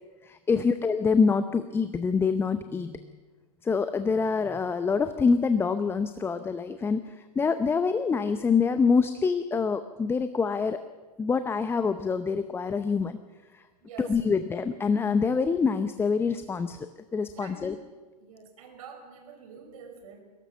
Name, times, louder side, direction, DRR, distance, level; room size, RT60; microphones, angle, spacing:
voice 1, 0.3-3.0 3.6-7.0 7.4-10.8 11.2-13.2 14.0-16.8 17.1-17.7, left 5 dB, 10° left, 11 dB, 0.7 m, -25 dB
voice 2, 13.8-14.3 17.4-17.9 18.2-20.2, right 6 dB, 55° right, 4 dB, 5.4 m, -47 dB
23.0 x 17.5 x 7.1 m, 1.3 s
figure-of-eight pair, 110°, 21 cm